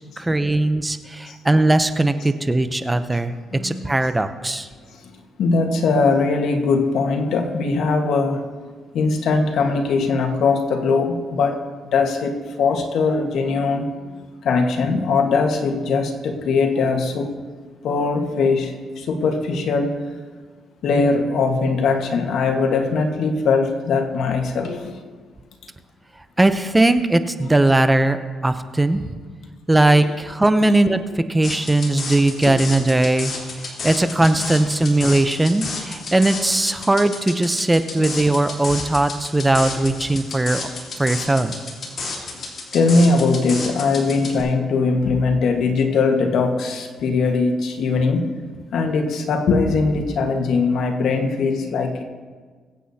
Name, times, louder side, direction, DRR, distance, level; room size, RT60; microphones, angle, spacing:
voice 1, 0.2-3.4 3.6-4.7 26.4-29.1 29.7-33.3 33.8-40.6 41.0-41.6, right 2 dB, 15° right, 10 dB, 0.6 m, -19 dB
voice 2, 3.5-3.8 5.4-8.4 8.9-11.6 11.9-13.9 14.4-17.3 17.8-20.0 20.8-24.9 32.4-32.6 42.7-48.3 48.7-52.0, left 4 dB, 70° left, 3 dB, 1.4 m, -20 dB
sound 1, 31.4-44.4, left 3 dB, 45° left, 3.5 m, -32 dB
23.0 x 8.3 x 2.8 m, 1.5 s
cardioid pair, 90°, 0 cm